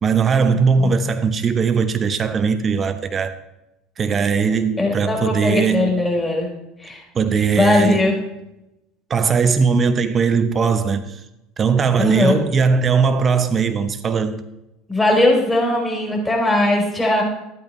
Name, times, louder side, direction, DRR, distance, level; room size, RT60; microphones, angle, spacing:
voice 1, 0.0-3.3 4.0-5.9 7.1-8.2 9.1-11.2 11.6-14.4, right 5 dB, 35° right, 10 dB, 0.8 m, -19 dB
voice 2, 4.8-6.5 6.8-7.0 7.5-8.1 12.0-12.4 14.9-17.2, left 2 dB, 15° left, -1 dB, 3.8 m, -19 dB
12.0 x 8.6 x 3.2 m, 0.92 s
hypercardioid pair, 75°, 0 cm